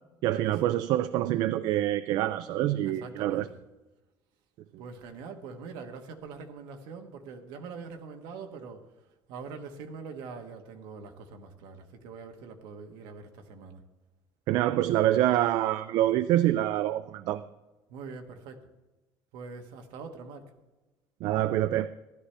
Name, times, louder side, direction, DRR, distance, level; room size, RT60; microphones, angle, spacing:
voice 1, 0.2-3.5 14.5-17.5 21.2-21.9, right 13 dB, 55° right, 14 dB, 0.3 m, -26 dB
voice 2, 2.8-3.6 4.8-8.8 9.3-13.8 17.9-18.6 19.3-20.5, right 5 dB, 70° right, 4 dB, 1.3 m, -43 dB
15.0 x 11.0 x 3.3 m, 1.1 s
cardioid pair, 175°, 8 cm